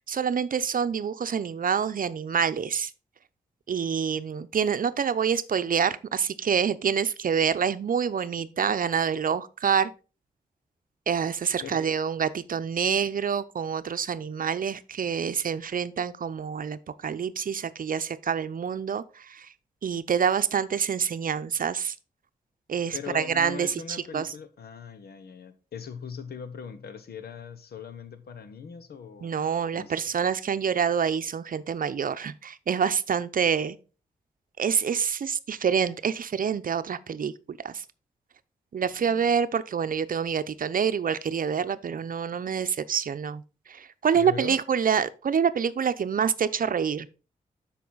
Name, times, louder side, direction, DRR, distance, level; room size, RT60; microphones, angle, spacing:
voice 1, 0.1-2.9 3.7-9.9 11.1-19.5 19.8-21.9 22.7-24.3 29.2-33.8 34.6-37.8 38.7-43.4 43.7-47.1, right 7 dB, 55° right, 0.7 m, -27 dB
voice 2, 22.9-29.4 29.7-30.0 38.9-39.4 44.1-44.6, left 7 dB, 75° left, 1.1 m, -40 dB
8.4 x 6.0 x 4.0 m
supercardioid pair, 40°, 17 cm